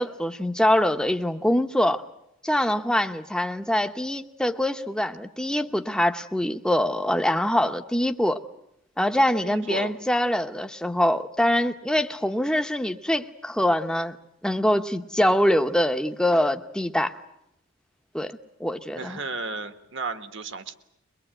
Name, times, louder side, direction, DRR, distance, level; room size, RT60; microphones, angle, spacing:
voice 1, 0.0-2.0 2.4-8.4 9.0-14.2 14.4-17.2 18.1-18.3 18.6-19.2, left 1 dB, 5° left, 7 dB, 0.9 m, -24 dB
voice 2, 9.4-9.9 18.9-20.7, right 3 dB, 55° right, 10 dB, 1.5 m, -33 dB
23.5 x 21.5 x 9.0 m, 0.79 s
head